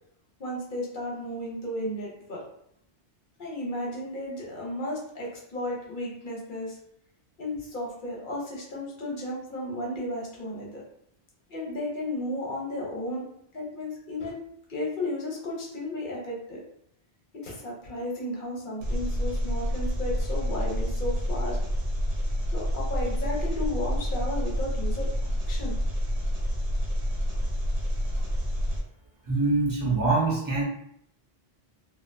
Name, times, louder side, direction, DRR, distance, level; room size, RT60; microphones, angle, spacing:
voice 1, 0.4-2.4 3.4-6.8 7.4-10.8 11.5-13.3 13.5-14.4 14.7-16.6 17.4-21.6 22.5-25.8, left 1 dB, 55° left, -3 dB, 0.9 m, -34 dB
Engine, 18.8-28.8, equal, 60° right, 0.8 m, -28 dB
voice 2, 29.3-30.6, right 3 dB, 25° right, -6 dB, 0.6 m, -24 dB
2.6 x 2.2 x 2.6 m, 0.71 s
omnidirectional pair, 1.1 m